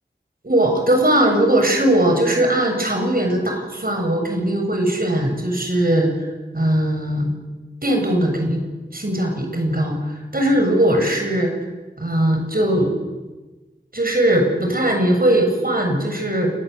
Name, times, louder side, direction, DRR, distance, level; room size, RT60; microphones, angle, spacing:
voice 1, 0.4-6.3 6.5-7.3 7.8-8.6 8.9-11.5 12.0-12.9 13.9-16.5, right 1 dB, 60° right, 3 dB, 7.4 m, -19 dB
29.0 x 19.0 x 8.2 m, 1.2 s
wide cardioid pair, 45°, 17 cm